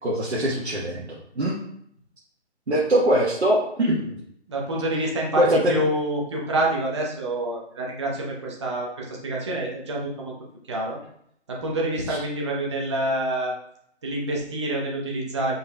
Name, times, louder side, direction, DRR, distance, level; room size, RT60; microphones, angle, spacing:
voice 1, 0.0-1.1 1.4-1.6 2.7-4.1 5.4-5.7, right 1 dB, 70° right, -6 dB, 1.3 m, -22 dB
voice 2, 4.5-10.3 10.7-11.0 11.5-13.5 14.0-15.5, right 1 dB, 25° right, -2 dB, 0.8 m, -27 dB
5.3 x 4.1 x 2.2 m, 0.70 s
figure-of-eight pair, 145°, 35 cm